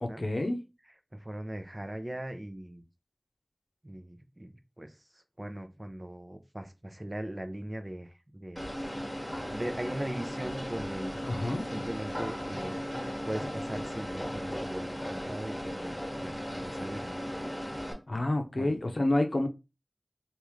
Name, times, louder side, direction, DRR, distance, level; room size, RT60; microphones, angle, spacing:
voice 1, 0.0-0.6 11.2-11.7 18.1-19.5, left 1 dB, 75° left, 0.6 m, -29 dB
voice 2, 1.1-2.8 3.8-8.6 9.3-11.1 11.4-17.2 18.5-18.7, right 1 dB, 30° right, 0.6 m, -40 dB
sound 1, 8.6-17.9, equal, 15° left, 1.3 m, -36 dB
3.5 x 2.5 x 3.1 m
wide cardioid pair, 50°, 0 cm